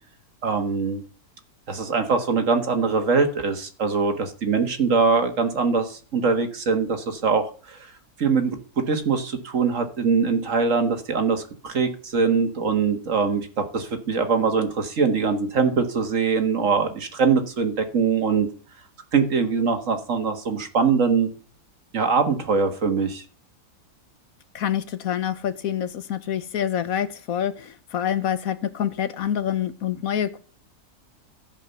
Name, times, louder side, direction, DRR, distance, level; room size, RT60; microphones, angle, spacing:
voice 1, 0.4-1.0 1.7-7.9 8.2-18.5 19.1-21.3 21.9-23.2, right 5 dB, 50° right, 7 dB, 1.8 m, -22 dB
voice 2, 24.5-30.4, left 9 dB, 60° left, 13 dB, 1.2 m, -26 dB
15.5 x 5.2 x 6.8 m, 0.40 s
omnidirectional pair, 1.8 m